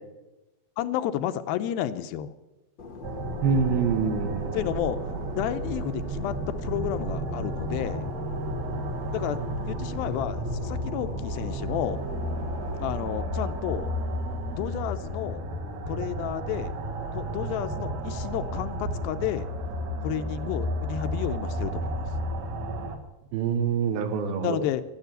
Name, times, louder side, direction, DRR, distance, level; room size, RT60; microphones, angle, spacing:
voice 1, 0.8-2.3 4.5-5.0 5.3-8.1 9.1-9.4 9.7-12.0 12.8-13.9 14.5-15.4 15.9-16.7 17.1-19.5 20.0-22.0 24.4-24.8, left 11 dB, 80° left, 10 dB, 2.5 m, -31 dB
Fixed-wing aircraft airplane, 2.8-13.0, left 3 dB, 60° left, 1.1 m, -42 dB
sound 1, 3.0-23.0, right 1 dB, 55° right, 2.4 m, -32 dB
voice 2, 3.4-4.6 23.3-24.6, right 6 dB, 80° right, 8 dB, 3.1 m, -25 dB
12.5 x 11.5 x 8.0 m, 1.0 s
omnidirectional pair, 4.4 m